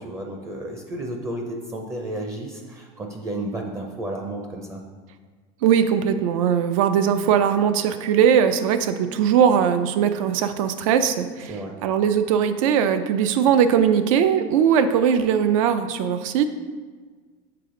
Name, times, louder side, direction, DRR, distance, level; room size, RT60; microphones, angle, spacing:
voice 1, 0.0-4.8 11.5-11.7, right 1 dB, 15° right, 2 dB, 0.5 m, -32 dB
voice 2, 5.6-11.5 11.8-16.5, right 8 dB, 80° right, 10 dB, 0.5 m, -20 dB
6.7 x 4.2 x 3.7 m, 1.5 s
supercardioid pair, 150°, 17 cm